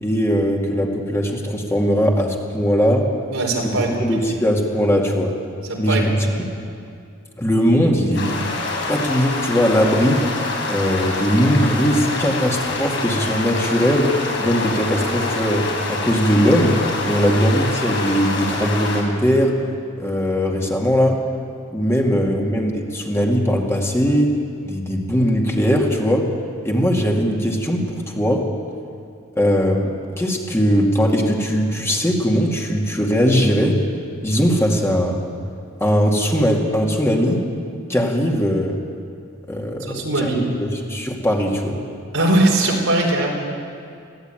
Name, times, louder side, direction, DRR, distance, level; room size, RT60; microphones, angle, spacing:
voice 1, 0.0-3.1 3.7-5.3 5.8-6.6 7.4-8.3 8.9-10.2 10.7-19.5 20.0-21.2 21.7-24.3 24.6-26.3 26.6-28.4 29.4-33.8 34.2-35.2 35.8-37.4 37.9-38.8 39.5-41.8, equal, 15° left, -1 dB, 2.3 m, -19 dB
voice 2, 3.3-4.2 5.7-6.2 22.1-22.2 39.9-40.4 42.1-43.3, right 2 dB, 85° right, 0 dB, 4.4 m, -20 dB
sound 1, 8.1-19.0, left 3 dB, 65° left, 4.3 m, -26 dB
21.5 x 15.5 x 9.1 m, 2.4 s
head